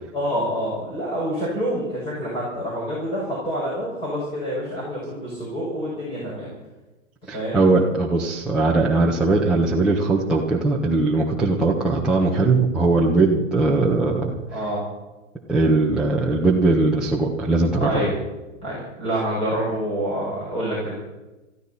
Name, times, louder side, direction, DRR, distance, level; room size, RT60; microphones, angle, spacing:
voice 1, 0.1-6.5 7.3-7.6 14.5-14.9 17.7-18.1 18.6-20.9, equal, 15° left, -5 dB, 6.2 m, -27 dB
voice 2, 7.3-14.3 15.5-18.0, right 3 dB, ahead, -6 dB, 1.3 m, -20 dB
20.5 x 14.5 x 4.3 m, 1.1 s
hypercardioid pair, 145°, 38 cm